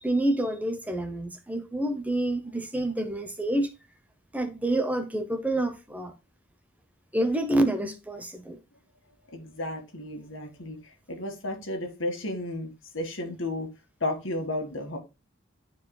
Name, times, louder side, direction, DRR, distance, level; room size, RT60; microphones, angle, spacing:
voice 1, 0.0-3.7 4.3-6.1 7.1-8.6, right 1 dB, 10° right, 0.7 m, -28 dB
voice 2, 9.3-10.8 11.1-13.7 14.0-15.0, left 1 dB, 65° left, 1.8 m, -33 dB
12.0 x 4.7 x 2.2 m
head